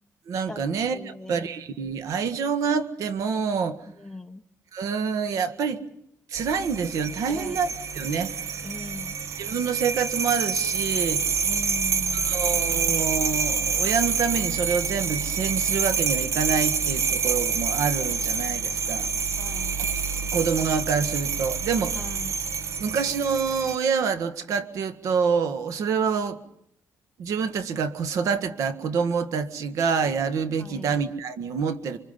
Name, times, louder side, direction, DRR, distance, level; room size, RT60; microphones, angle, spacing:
voice 1, 0.3-3.9 4.7-5.9 6.3-7.7 7.9-8.4 9.4-11.3 12.1-19.1 19.8-20.0 20.3-22.0 22.8-26.4 27.2-32.0, right 6 dB, 85° right, 11 dB, 1.7 m, -27 dB
voice 2, 0.9-1.5 4.0-4.4 7.3-7.6 8.6-9.2 11.4-12.6 19.4-19.7 22.0-22.3 30.6-31.0, left 2 dB, 10° left, 6 dB, 1.7 m, -40 dB
sound 1, 6.3-23.8, right 6 dB, 65° right, 1.2 m, -27 dB
26.5 x 24.5 x 5.5 m, 0.74 s
cardioid pair, 115°, 5 cm